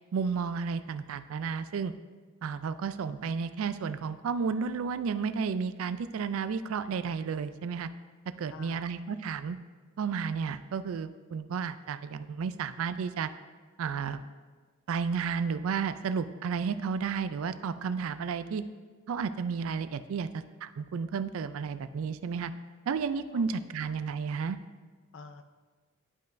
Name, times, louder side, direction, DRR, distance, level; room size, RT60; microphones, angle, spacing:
voice 1, 0.1-1.9 2.4-7.9 8.4-9.6 10.0-13.3 13.8-14.2 14.9-18.6 19.1-20.3 20.6-22.5 22.9-24.6, right 6 dB, 70° right, 12 dB, 0.3 m, -32 dB
voice 2, 8.5-8.9 23.3-23.9 25.1-25.4, left 4 dB, 60° left, 9 dB, 0.5 m, -49 dB
11.0 x 5.4 x 2.6 m, 1.5 s
head